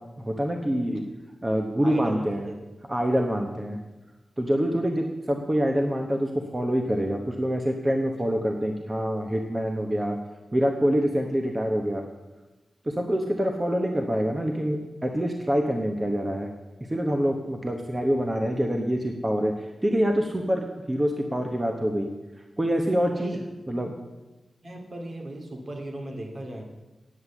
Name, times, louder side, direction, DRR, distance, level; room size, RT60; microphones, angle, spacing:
voice 1, 0.2-1.0 1.4-2.5 2.9-3.8 4.4-10.2 10.5-12.0 12.9-16.5 16.9-19.5 19.8-22.1 22.6-23.3 23.7-23.9, equal, 20° right, 3 dB, 1.0 m, -26 dB
voice 2, 1.8-2.6 3.0-3.5 23.1-23.4 24.6-26.6, right 1 dB, 55° right, 1 dB, 2.2 m, -37 dB
9.5 x 8.1 x 7.1 m, 1.1 s
wide cardioid pair, 90°, 0 cm